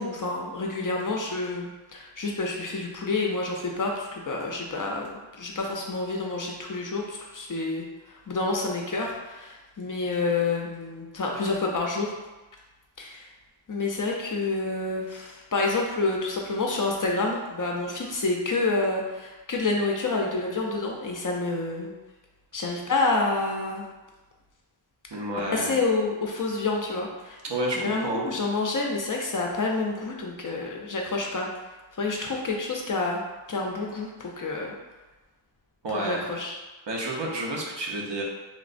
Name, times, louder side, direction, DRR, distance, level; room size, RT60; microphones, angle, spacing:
voice 1, 0.0-12.1 13.0-13.3 13.7-21.9 22.5-23.9 25.5-27.4 27.8-31.5 32.0-33.2 33.5-34.7 36.0-36.6, left 3 dB, 45° left, 0 dB, 0.4 m, -28 dB
voice 2, 25.1-25.7 27.4-28.2 35.8-36.2 36.9-38.2, right 1 dB, 65° right, -2 dB, 0.6 m, -30 dB
3.1 x 2.0 x 2.5 m, 1.1 s
wide cardioid pair, 65°, 47 cm